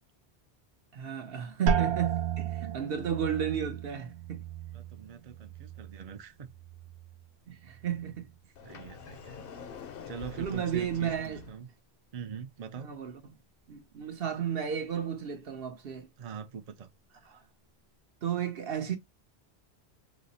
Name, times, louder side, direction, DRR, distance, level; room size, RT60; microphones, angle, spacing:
voice 1, 0.9-4.4 7.5-8.3 10.4-11.4 12.8-13.1 13.7-16.1 17.3-17.4 18.2-19.0, right 8 dB, 65° right, 1.0 m, -33 dB
sound 1, 1.7-7.3 7.6-8.3 8.9-9.3, right 7 dB, 90° right, 0.9 m, -35 dB
voice 2, 4.7-6.5 8.6-9.4 10.1-11.7 12.1-12.9 16.2-16.9, right 7 dB, 45° right, 0.5 m, -43 dB
Sliding door, 8.6-11.6, left 6 dB, 65° left, 0.8 m, -46 dB
5.0 x 2.0 x 2.6 m
omnidirectional pair, 1.1 m